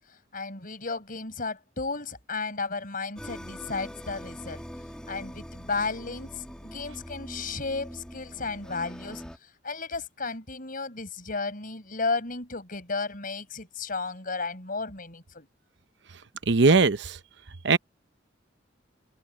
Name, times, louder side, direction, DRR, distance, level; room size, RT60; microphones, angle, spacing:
voice 1, 0.3-4.6 5.1-9.2 9.6-15.5, left 4 dB, 50° left, 5.6 m, -33 dB
sound 1, 3.2-9.4, equal, 5° left, 2.2 m, -43 dB
voice 2, 16.5-17.2 17.6-17.8, right 4 dB, 70° right, 0.9 m, -19 dB
open air
head